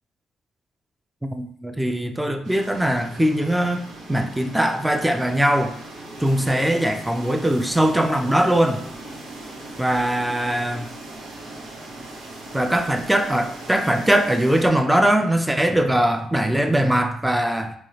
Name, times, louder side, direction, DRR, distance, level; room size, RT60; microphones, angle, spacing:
voice 1, 1.3-3.8 4.1-5.7 6.2-8.8 9.8-10.9 12.5-17.7, right 1 dB, 5° right, 6 dB, 0.4 m, -21 dB
sound 1, 2.4-14.7, right 2 dB, 80° right, 1.0 m, -39 dB
4.6 x 2.3 x 2.8 m, 0.66 s
cardioid pair, 90°, 0 cm